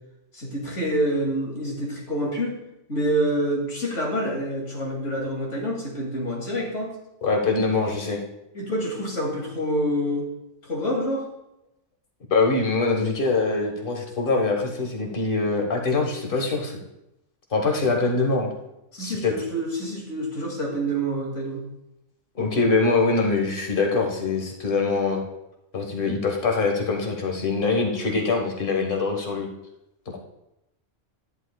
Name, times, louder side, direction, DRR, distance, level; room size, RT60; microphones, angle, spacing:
voice 1, 0.3-2.6 2.9-6.9 8.5-10.3 10.6-11.3 18.9-21.7, equal, 70° left, -2 dB, 2.9 m, -27 dB
voice 2, 7.2-8.2 12.3-16.8 17.5-18.5 19.0-19.3 22.3-25.2 25.7-29.5 30.1-30.2, left 3 dB, 45° left, 2 dB, 1.6 m, -23 dB
11.5 x 10.5 x 2.3 m, 0.85 s
omnidirectional pair, 1.3 m